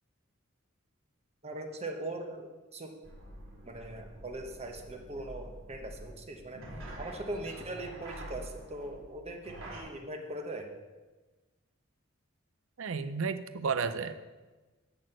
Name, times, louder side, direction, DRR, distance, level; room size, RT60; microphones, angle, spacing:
voice 1, 1.4-2.9 3.7-6.6 7.0-10.7, right 1 dB, 30° right, 3 dB, 0.9 m, -40 dB
sound 1, 3.0-9.8, right 1 dB, 85° right, 3.3 m, -47 dB
voice 2, 12.8-14.2, right 5 dB, 70° right, 12 dB, 0.6 m, -32 dB
11.0 x 4.3 x 7.7 m, 1.2 s
head